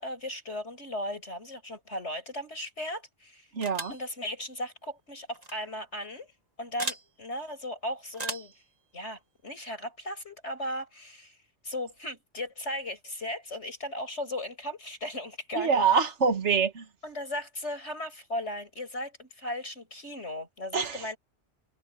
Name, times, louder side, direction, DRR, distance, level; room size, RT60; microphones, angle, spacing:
voice 1, 0.0-3.5 3.9-6.3 6.6-8.5 8.9-11.4 11.6-15.8 17.0-21.2, left 1 dB, 70° left, 7.3 m, -36 dB
sound 1, 3.6-4.0 5.3-5.5 6.8-7.1 8.1-8.6, right 2 dB, 35° right, 2.4 m, -36 dB
voice 2, 3.6-3.9 15.6-16.8 20.7-21.0, right 5 dB, 75° right, 1.9 m, -25 dB
omnidirectional pair, 1.2 m